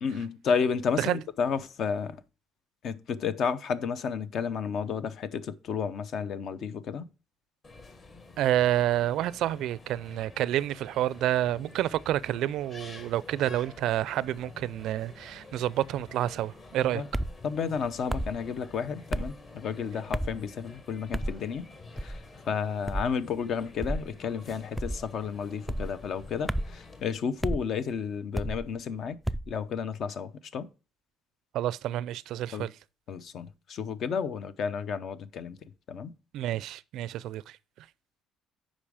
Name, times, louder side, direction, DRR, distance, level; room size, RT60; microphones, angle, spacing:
voice 1, 0.0-2.2 2.8-7.0 16.9-17.1 17.4-21.7 22.0-22.1 22.5-29.2 29.5-30.7 32.5-32.7 33.1-35.6 35.9-36.1, left 6 dB, 50° left, 0.7 m, -32 dB
sound 1, 7.6-27.0, left 3 dB, 30° left, 1.5 m, -50 dB
voice 2, 8.4-17.0 31.5-32.7 36.3-37.6, right 13 dB, 70° right, 0.4 m, -29 dB
sound 2, 17.1-17.4 18.1-18.4 19.1-19.3 20.1-20.4 21.1-21.4 22.0-22.3 22.9-23.1 23.8-24.1 24.7-25.1 25.7-25.9 26.5-26.8 27.4-27.6 28.3-28.6 29.2-29.5, right 1 dB, ahead, 0.3 m, -31 dB
8.8 x 5.3 x 4.9 m
cardioid pair, 140°, 0 cm